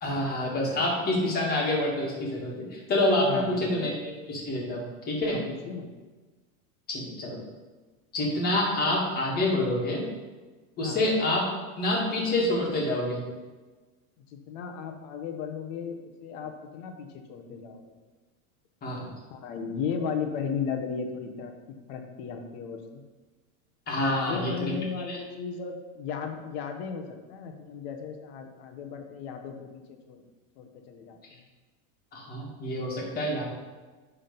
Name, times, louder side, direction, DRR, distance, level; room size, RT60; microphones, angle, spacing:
voice 1, 0.0-5.4 6.9-7.4 8.1-10.0 10.8-11.5 11.8-13.2 18.8-19.1 23.9-24.7 25.1-25.2 32.1-33.5, left 1 dB, 20° left, -3 dB, 1.9 m, -27 dB
voice 2, 3.2-3.8 5.2-5.9 10.8-11.1 14.3-17.8 19.3-21.5 21.9-23.0 24.0-29.8 30.1-30.2 30.6-31.4, left 6 dB, 45° left, 4 dB, 1.1 m, -35 dB
10.0 x 3.7 x 5.3 m, 1.3 s
supercardioid pair, 155°, 42 cm